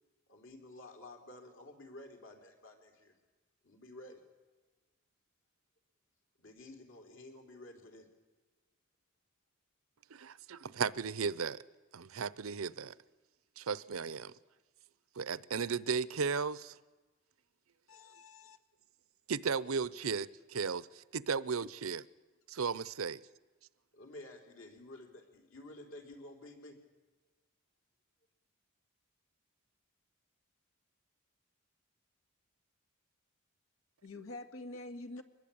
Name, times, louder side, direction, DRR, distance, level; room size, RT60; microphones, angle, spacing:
voice 1, 0.3-3.1 3.6-4.2 6.4-8.1 23.9-26.8, left 2 dB, 65° left, 4 dB, 4.3 m, -52 dB
voice 2, 10.1-11.6 11.9-12.9 13.6-14.3 15.2-16.7 19.3-22.1 22.5-23.2, right 5 dB, 80° right, 19 dB, 0.7 m, -35 dB
voice 3, 17.9-18.6 34.0-35.2, left 2 dB, 85° left, 9 dB, 1.8 m, -46 dB
24.0 x 20.5 x 8.8 m, 1.2 s
head